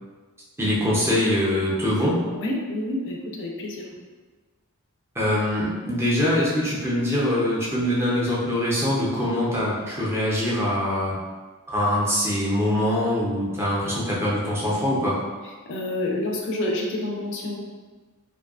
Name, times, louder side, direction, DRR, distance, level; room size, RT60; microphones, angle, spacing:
voice 1, 0.6-2.2 5.2-11.2 11.7-15.2, left 1 dB, 10° right, -6 dB, 0.5 m, -23 dB
voice 2, 2.3-3.9 15.4-17.6, left 1 dB, 55° left, 0 dB, 0.3 m, -28 dB
2.6 x 2.2 x 2.3 m, 1.4 s
head